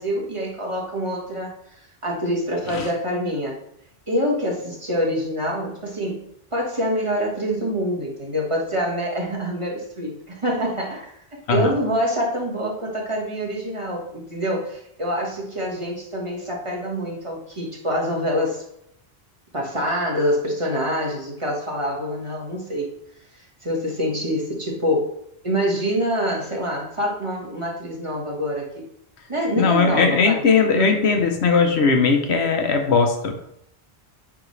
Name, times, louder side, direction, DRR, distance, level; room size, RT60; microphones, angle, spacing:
voice 1, 0.0-1.5 2.0-3.6 4.1-18.6 19.5-22.9 23.6-25.1 25.4-28.9 29.3-30.4 30.7-31.0, equal, 30° right, -2 dB, 1.4 m, -26 dB
voice 2, 29.6-33.4, left 5 dB, 75° left, 5 dB, 1.1 m, -19 dB
9.8 x 3.6 x 3.2 m, 0.73 s
omnidirectional pair, 1.1 m